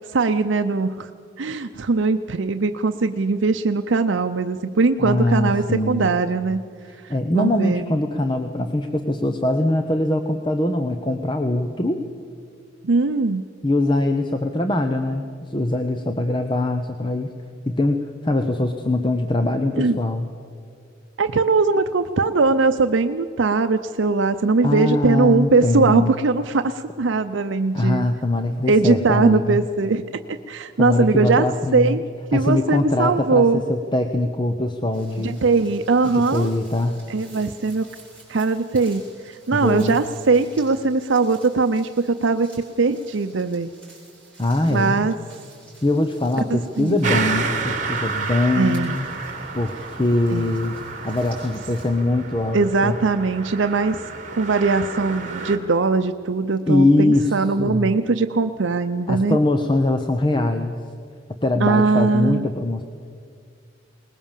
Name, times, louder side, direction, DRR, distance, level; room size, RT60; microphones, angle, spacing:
voice 1, 0.1-1.1 1.4-6.7 7.0-7.8 12.8-13.4 19.8-20.0 21.2-28.1 28.7-31.5 31.7-32.0 32.3-33.6 35.2-36.5 37.1-37.8 38.3-42.5 42.8-43.7 44.7-45.1 46.5-47.1 48.5-49.0 50.3-50.6 52.5-54.0 54.4-59.4 61.6-62.5, right 4 dB, 80° right, 7 dB, 0.6 m, -20 dB
voice 2, 5.0-6.1 7.1-12.0 13.6-17.3 17.7-20.3 24.6-26.1 27.7-29.6 30.8-32.0 32.3-35.4 36.1-37.0 39.5-40.0 44.4-45.0 45.8-49.0 49.5-50.8 51.0-53.0 56.7-57.9 59.1-60.8 61.4-62.8, left 2 dB, 25° left, 6 dB, 0.8 m, -22 dB
sound 1, 34.9-51.9, right 2 dB, 5° left, 5.1 m, -50 dB
sound 2, 47.0-55.6, right 4 dB, 40° right, 1.9 m, -30 dB
21.0 x 20.0 x 7.4 m, 2.2 s
head